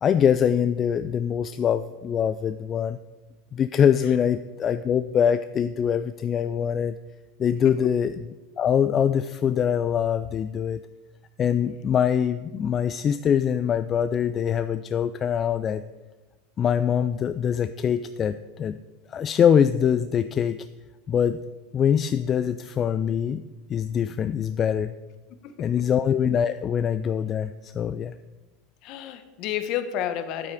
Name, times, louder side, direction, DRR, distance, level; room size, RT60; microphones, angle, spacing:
voice 1, 0.0-3.0 3.5-6.9 7.4-8.1 8.6-10.8 11.4-15.8 16.6-18.8 19.1-20.7 21.1-21.4 21.7-23.4 23.7-24.9 25.6-28.1, left 8 dB, 35° left, 12 dB, 0.3 m, -23 dB
voice 2, 25.4-25.8 28.8-30.5, left 10 dB, 55° left, 10 dB, 1.0 m, -31 dB
8.5 x 8.4 x 4.8 m, 1.2 s
hypercardioid pair, 105°, 0 cm